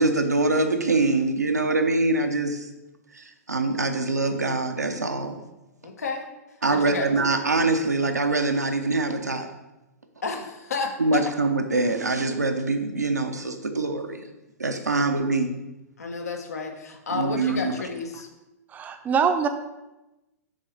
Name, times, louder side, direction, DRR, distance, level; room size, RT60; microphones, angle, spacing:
voice 1, 0.0-2.7 3.1-5.4 6.6-9.5 11.0-14.3 14.6-15.6 17.1-17.7, right 3 dB, 90° right, 5 dB, 0.7 m, -24 dB
voice 2, 5.8-6.3 6.7-7.1 10.2-11.2 16.0-18.3, left 4 dB, 70° left, 4 dB, 1.0 m, -31 dB
voice 3, 18.7-19.5, right 6 dB, 20° right, 7 dB, 0.6 m, -24 dB
6.5 x 3.9 x 4.5 m, 1.0 s
figure-of-eight pair, 110°, 9 cm